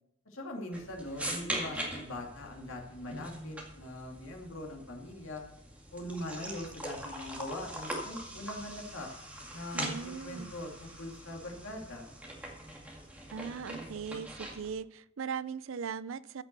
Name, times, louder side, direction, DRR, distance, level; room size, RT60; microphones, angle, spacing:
voice 1, 0.3-5.4 5.9-9.1 9.5-12.1, left 1 dB, 75° left, 2 dB, 2.4 m, -42 dB
sound 1, 0.7-14.7, right 1 dB, 5° right, 2.1 m, -42 dB
voice 2, 9.7-10.5 13.3-16.4, right 6 dB, 75° right, 17 dB, 0.5 m, -39 dB
14.5 x 6.1 x 6.7 m, 0.79 s
head